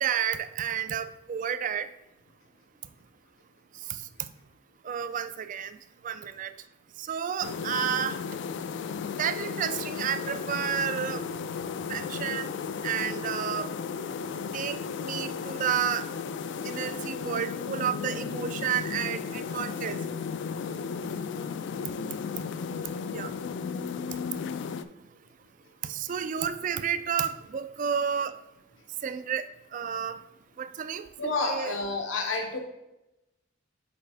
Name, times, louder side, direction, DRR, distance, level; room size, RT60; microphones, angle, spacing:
voice 1, 0.0-1.9 3.9-4.0 4.8-5.8 6.0-6.5 7.0-8.2 9.2-11.2 11.9-12.5 12.8-13.7 14.5-16.1 16.6-20.0 23.1-23.3 25.8-28.3 29.0-29.5 29.7-30.2 30.6-31.0 31.5-31.7, right 8 dB, 40° right, 11 dB, 0.3 m, -31 dB
sound 1, 7.4-24.9, left 6 dB, 60° left, 0.3 m, -34 dB
voice 2, 21.7-22.2 31.2-32.6, left 3 dB, 75° left, 3 dB, 0.7 m, -30 dB
6.8 x 4.3 x 3.4 m, 0.93 s
head